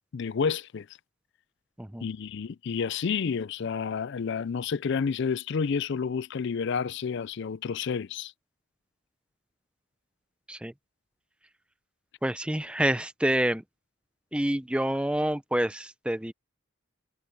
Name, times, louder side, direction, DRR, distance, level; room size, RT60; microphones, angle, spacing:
voice 1, 0.1-0.9 2.0-8.3, left 6 dB, 55° left, 0.4 m, -30 dB
voice 2, 12.2-13.6 14.3-16.3, right 1 dB, 5° right, 0.6 m, -27 dB
head